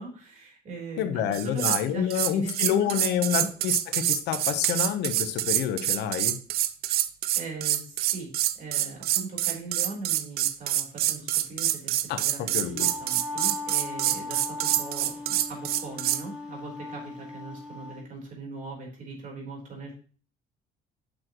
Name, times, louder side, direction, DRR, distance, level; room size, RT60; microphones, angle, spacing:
voice 1, 0.0-3.5 7.3-20.0, right 3 dB, 50° right, -1 dB, 3.9 m, -40 dB
voice 2, 1.0-6.4 12.1-12.2 12.5-12.9, left 9 dB, 85° left, 10 dB, 1.0 m, -28 dB
sound 1, 1.3-1.8 2.1-16.2, right 13 dB, 65° right, 0.5 m, -26 dB
Wind instrument woodwind instrument, 12.5-18.0, left 3 dB, 5° right, 2.4 m, -38 dB
8.4 x 6.4 x 3.0 m, 0.40 s
cardioid pair, 110°, 17 cm